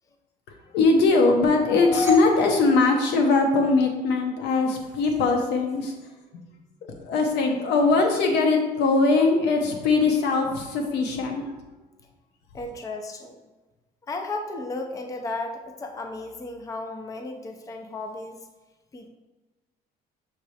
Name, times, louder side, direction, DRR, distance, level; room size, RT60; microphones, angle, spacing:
voice 1, 0.7-5.9 6.3-6.4 7.0-11.4, left 3 dB, 85° left, 3 dB, 0.8 m, -21 dB
sound 1, 1.5-3.8, left 3 dB, 10° right, 0.9 m, -32 dB
voice 2, 12.5-13.4 14.1-18.5 18.9-19.1, left 2 dB, 20° left, 4 dB, 0.5 m, -34 dB
5.9 x 3.2 x 2.7 m, 1.1 s
cardioid pair, 110°, 17 cm